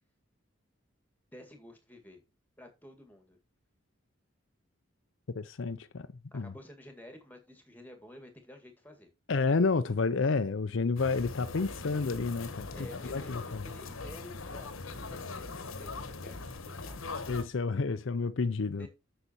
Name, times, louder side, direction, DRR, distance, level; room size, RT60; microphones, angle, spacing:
voice 1, 1.3-2.2 2.6-3.4 6.3-9.1 12.7-17.1 17.9-18.0 18.8-18.9, equal, 10° left, 2.0 m, -52 dB
voice 2, 5.3-6.1 6.3-6.5 9.3-12.7 13.0-13.7 17.3-18.9, left 4 dB, 70° left, 0.6 m, -30 dB
sound 1, 11.0-17.4, left 3 dB, 85° left, 1.2 m, -41 dB
8.3 x 6.7 x 4.4 m
head